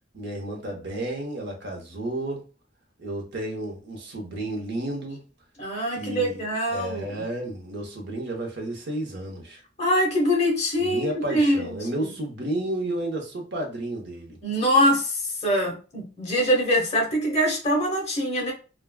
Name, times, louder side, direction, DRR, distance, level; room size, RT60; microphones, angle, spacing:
voice 1, 0.1-2.4 3.0-5.2 5.9-9.6 10.8-14.4, right 1 dB, 60° right, 0.8 m, -32 dB
voice 2, 5.6-7.2 9.8-12.1 14.4-18.5, equal, 35° left, 1.0 m, -24 dB
3.4 x 2.2 x 2.2 m
head